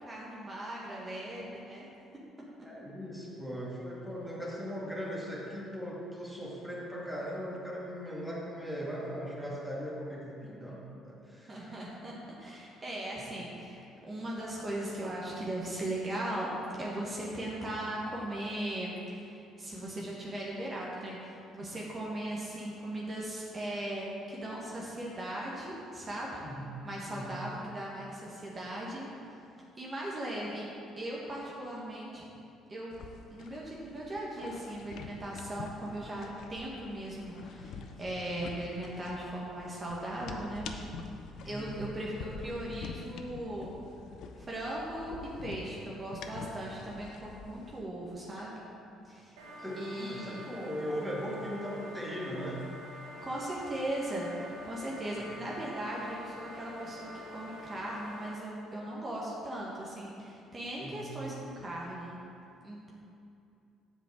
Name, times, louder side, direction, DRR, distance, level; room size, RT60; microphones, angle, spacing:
voice 1, 0.0-1.9 11.5-12.1 12.4-16.5 16.8-26.4 26.8-29.3 29.8-30.7 31.0-32.2 32.7-33.0 33.3-40.7 41.4-43.7 44.4-48.5 49.0-49.4 49.8-50.5 53.2-62.2 62.6-62.9, right 1 dB, 30° right, -5 dB, 1.6 m, -38 dB
voice 2, 2.6-11.8 26.4-26.7 27.1-27.4 41.4-41.8 49.6-52.6 60.8-61.2, equal, ahead, -5 dB, 2.1 m, -39 dB
sound 1, 32.9-47.8, left 5 dB, 65° left, 0.6 m, -46 dB
sound 2, 49.4-58.3, equal, 75° right, 1.3 m, -47 dB
7.4 x 5.0 x 6.4 m, 2.6 s
hypercardioid pair, 50°, 0 cm